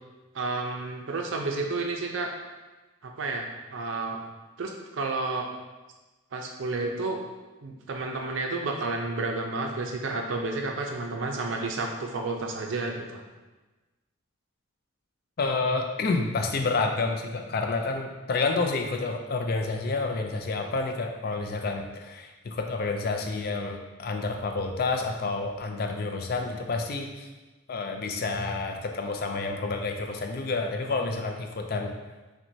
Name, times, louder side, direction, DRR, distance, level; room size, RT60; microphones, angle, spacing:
voice 1, 0.3-2.3 3.0-4.2 4.6-5.5 6.3-7.2 7.6-13.2, right 3 dB, 65° right, 2 dB, 0.5 m, -31 dB
voice 2, 15.4-27.3 27.7-31.9, left 3 dB, 45° left, 4 dB, 0.4 m, -29 dB
5.8 x 2.2 x 2.7 m, 1.2 s
head